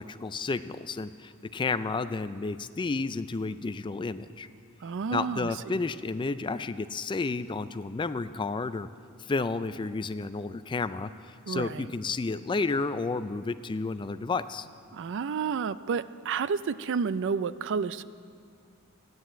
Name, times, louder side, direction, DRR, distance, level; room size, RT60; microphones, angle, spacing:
voice 1, 0.0-4.5 5.1-8.9 9.2-14.7, left 3 dB, 20° left, 12 dB, 0.3 m, -31 dB
voice 2, 4.8-5.8 11.5-11.8 14.9-18.0, right 5 dB, 55° right, 15 dB, 0.4 m, -31 dB
14.0 x 9.5 x 8.9 m, 2.2 s
head